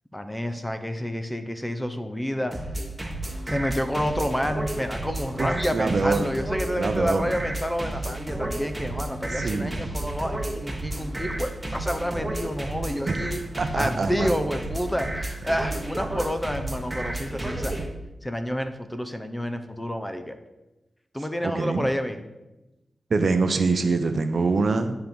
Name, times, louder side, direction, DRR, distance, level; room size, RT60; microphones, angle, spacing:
voice 1, 0.1-2.6 3.5-13.4 13.7-17.8 18.2-20.4 21.1-22.2, equal, 10° left, 7 dB, 0.8 m, -29 dB
sound 1, 2.5-17.9, right 1 dB, 15° right, 1.3 m, -32 dB
voice 2, 5.4-6.3 6.8-7.3 9.3-9.8 13.1-13.3 13.6-14.3 21.4-21.9 23.1-25.0, right 3 dB, 60° right, 8 dB, 0.7 m, -24 dB
10.0 x 4.6 x 5.3 m, 1.0 s
cardioid pair, 75°, 0 cm